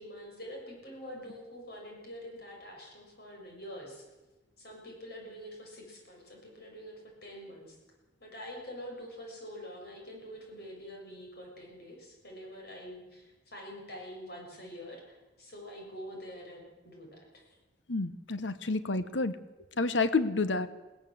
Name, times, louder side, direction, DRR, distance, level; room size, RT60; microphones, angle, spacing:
voice 1, 0.0-4.1 4.6-7.8 8.2-17.4, equal, 60° left, 0 dB, 7.1 m, -46 dB
voice 2, 17.9-19.4 19.8-20.7, left 3 dB, 85° left, 13 dB, 1.1 m, -29 dB
21.5 x 18.0 x 7.8 m, 1.1 s
head